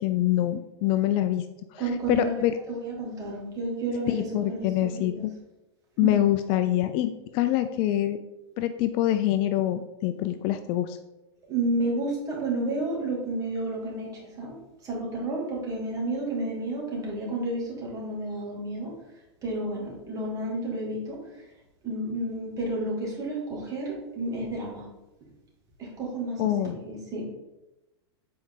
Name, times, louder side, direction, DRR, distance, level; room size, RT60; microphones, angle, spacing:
voice 1, 0.0-1.4 1.7-2.5 4.1-5.3 6.0-8.2 8.6-11.0 26.4-26.8, left 13 dB, 40° left, 10 dB, 0.4 m, -25 dB
voice 2, 1.8-5.2 6.0-6.2 11.5-14.1 14.4-14.5 14.8-18.9 19.4-21.2 21.8-24.8 26.0-27.3, right 2 dB, 25° right, -3 dB, 2.4 m, -31 dB
7.6 x 4.7 x 3.8 m, 1.0 s
supercardioid pair, 140°, 14 cm